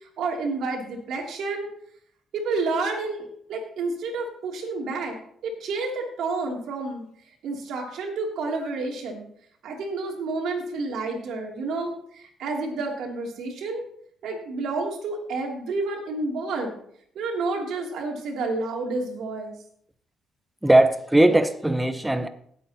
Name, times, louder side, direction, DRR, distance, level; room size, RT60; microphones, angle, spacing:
voice 1, 0.2-1.7 2.3-3.2 3.5-5.2 5.4-7.0 7.4-9.3 9.6-13.8 14.2-16.7 17.1-19.5, right 3 dB, 75° right, 2.9 m, -29 dB
voice 2, 20.6-22.3, right 1 dB, 10° right, 1.0 m, -19 dB
18.5 x 8.4 x 2.9 m
cardioid pair, 90°, 0 cm